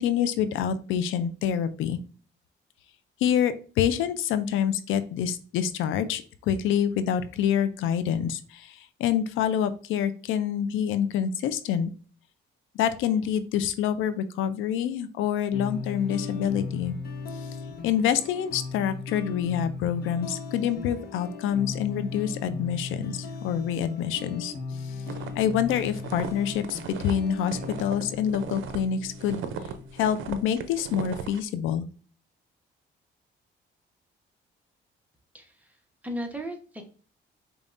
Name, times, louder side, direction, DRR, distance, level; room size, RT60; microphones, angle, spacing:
voice 1, 0.0-2.0 3.2-11.9 12.8-17.0 17.8-24.5 24.8-24.9 25.4-29.4 30.0-31.9, left 9 dB, 85° left, 11 dB, 0.4 m, -27 dB
sound 1, 15.5-30.5, left 4 dB, 50° left, 0.8 m, -38 dB
sound 2, 25.0-28.8 29.1-31.4, right 7 dB, 80° right, 0.5 m, -37 dB
voice 2, 35.3-35.8 36.0-36.8, equal, 5° right, 2 dB, 0.9 m, -36 dB
5.2 x 2.3 x 2.5 m, 0.39 s
cardioid pair, 90°, 20 cm